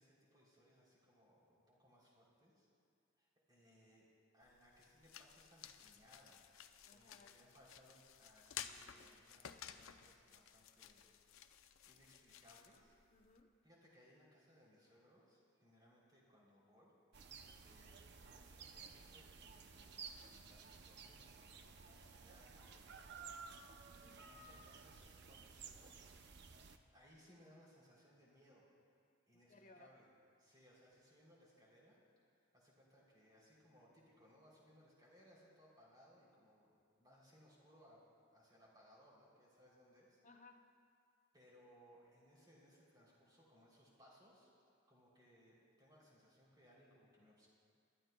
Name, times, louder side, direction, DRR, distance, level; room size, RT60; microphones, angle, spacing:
voice 1, 0.0-2.7 3.2-4.1 4.3-6.4 6.9-11.1 11.9-13.0 13.6-16.9 17.6-23.3 24.0-25.9 26.9-28.7 29.3-30.1 30.4-32.0 32.5-38.0 38.3-40.2 41.3-44.5 44.9-47.5, equal, 20° right, -5 dB, 3.2 m, -67 dB
sound 1, 4.4-13.4, left 9 dB, 80° left, 0.5 m, -55 dB
voice 2, 6.8-7.4 13.1-13.5 24.0-24.2 29.3-29.9 40.2-40.6, left 3 dB, 35° left, 3 dB, 0.7 m, -63 dB
sound 2, 17.1-26.8, right 5 dB, 55° right, 0.6 m, -55 dB
27.5 x 12.5 x 2.3 m, 2.3 s
head